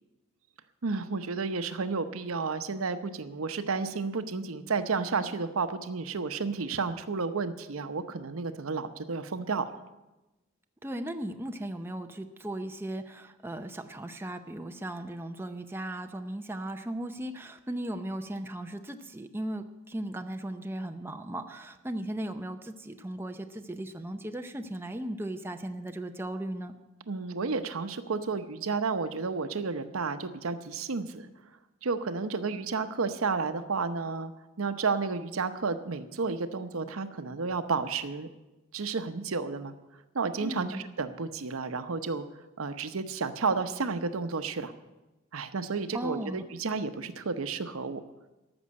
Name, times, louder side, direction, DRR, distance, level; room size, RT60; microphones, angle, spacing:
voice 1, 0.8-9.8 27.1-31.3 31.8-34.3 34.6-38.3 38.7-39.7 40.1-42.2 42.6-44.7 45.3-48.0, right 4 dB, 85° right, 10 dB, 0.8 m, -31 dB
voice 2, 10.8-26.7 40.4-40.9 45.9-46.4, right 1 dB, 10° right, 6 dB, 0.6 m, -37 dB
14.0 x 6.2 x 9.6 m, 1.1 s
head